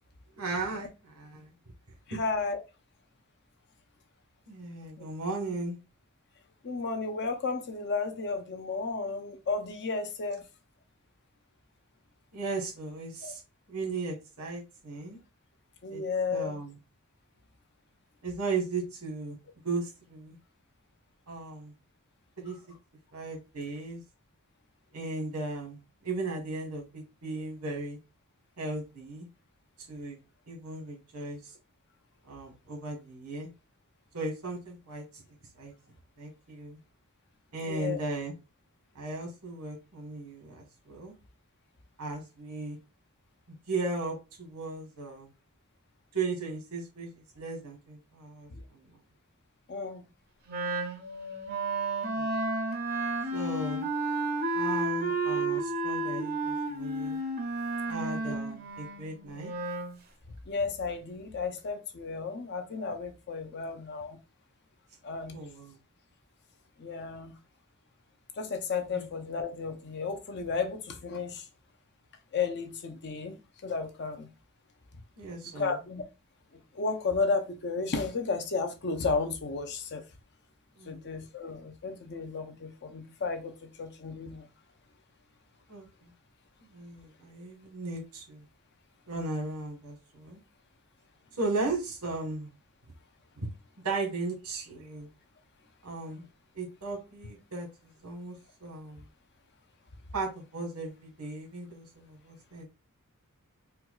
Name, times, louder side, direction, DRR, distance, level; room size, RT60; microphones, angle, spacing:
voice 1, 0.4-1.5 2.1-2.2 4.5-5.8 12.3-13.4 13.7-15.2 15.9-16.0 16.3-16.7 18.2-19.4 19.6-20.4 21.3-21.7 22.4-22.6 23.1-24.0 24.9-28.0 28.6-29.3 29.9-30.2 30.5-31.4 32.3-33.5 34.1-35.0 35.6-35.7 36.2-36.8 37.5-38.3 38.9-41.1 42.0-42.8 43.7-45.3 46.1-48.8 52.1-52.4 53.3-53.9 54.5-57.2 57.9-59.5 65.3-65.8 68.9-69.0 75.2-75.7 80.8-81.0 85.7-86.1 86.7-88.4 89.1-90.4 91.4-92.5 93.4-93.5 93.8-95.1 95.8-96.2 96.5-97.7 98.0-99.1 100.1-102.6, right 3 dB, 85° right, 1.5 m, -36 dB
voice 2, 2.1-2.6 5.0-5.1 6.6-10.4 13.2-13.3 15.8-16.6 37.6-38.0 48.5-48.6 49.7-50.0 58.2-58.4 60.5-64.2 65.0-65.4 66.8-67.3 68.4-71.5 72.3-74.3 75.4-76.0 76.7-80.0 80.9-84.5, left 4 dB, 50° left, 0.6 m, -33 dB
Wind instrument woodwind instrument, 50.5-59.9, right 2 dB, 45° right, 0.6 m, -32 dB
4.4 x 2.3 x 2.3 m
head